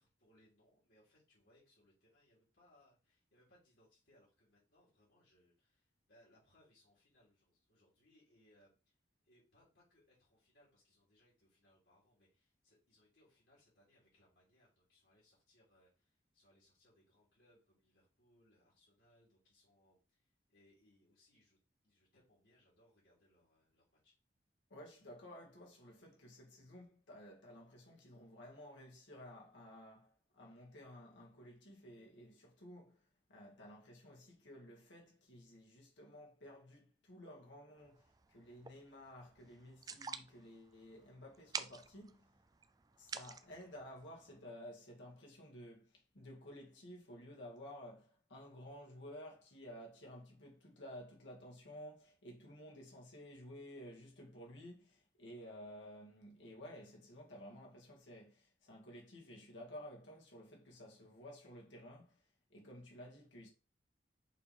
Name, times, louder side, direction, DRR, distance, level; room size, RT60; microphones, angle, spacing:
voice 1, 0.0-8.9 9.2-21.6 21.8-24.1, left 1 dB, 75° left, 3.3 m, -71 dB
voice 2, 24.7-33.0 33.3-42.3 43.0-62.2 62.5-63.5, equal, 90° left, 2.1 m, -54 dB
sound 1, 37.8-44.4, right 5 dB, 20° right, 0.3 m, -50 dB
6.4 x 3.4 x 4.3 m
head